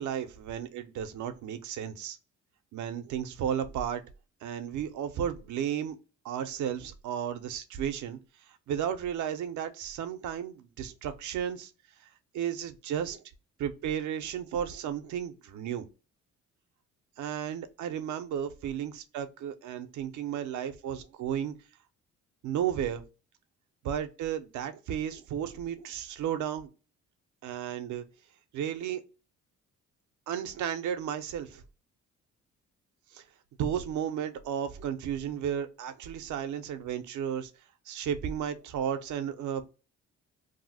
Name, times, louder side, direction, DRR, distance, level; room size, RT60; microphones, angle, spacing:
voice 1, 0.0-2.2 2.7-4.0 4.4-6.0 6.2-8.2 8.5-11.7 12.3-13.2 13.6-15.9 17.2-21.5 22.4-23.0 23.8-26.7 27.4-28.0 28.5-29.0 30.3-31.6 33.1-33.2 33.6-37.5 37.9-39.6, right 9 dB, 75° right, 0.6 m, -33 dB
2.6 x 2.0 x 3.9 m
cardioid pair, 90°, 30 cm